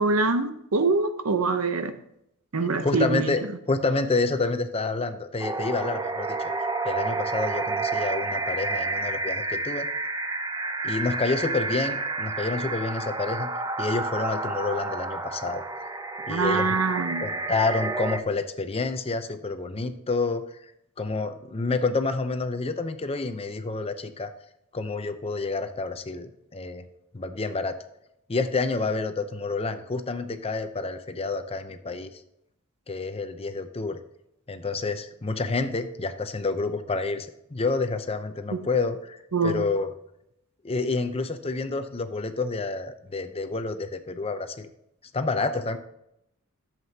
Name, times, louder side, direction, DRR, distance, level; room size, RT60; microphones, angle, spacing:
voice 1, 0.0-1.9 2.5-3.3 16.3-17.3 38.5-38.6 39.3-39.7, right 3 dB, 65° right, 0.8 m, -24 dB
voice 2, 2.8-6.4 6.8-9.9 10.8-13.5 13.8-15.6 16.3-16.7 17.2-20.4 21.0-24.3 24.7-26.8 27.1-27.8 28.3-32.1 32.9-34.0 34.5-39.9 40.6-44.7 45.1-45.8, left 3 dB, 25° left, 0.6 m, -28 dB
sound 1, 5.4-18.2, right 3 dB, 15° right, 0.5 m, -30 dB
11.0 x 7.5 x 2.8 m
head